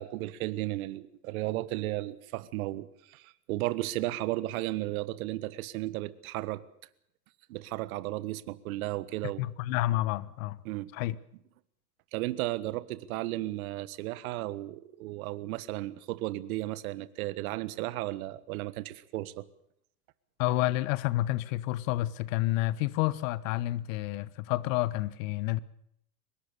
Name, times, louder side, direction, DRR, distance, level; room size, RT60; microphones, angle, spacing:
voice 1, 0.0-6.6 7.5-9.4 10.6-10.9 12.1-19.4, right 17 dB, 60° right, 1.6 m, -34 dB
voice 2, 9.4-10.6 10.9-11.2 20.4-25.6, left 16 dB, 55° left, 1.3 m, -29 dB
24.0 x 20.5 x 6.9 m
hypercardioid pair, 110°, 48 cm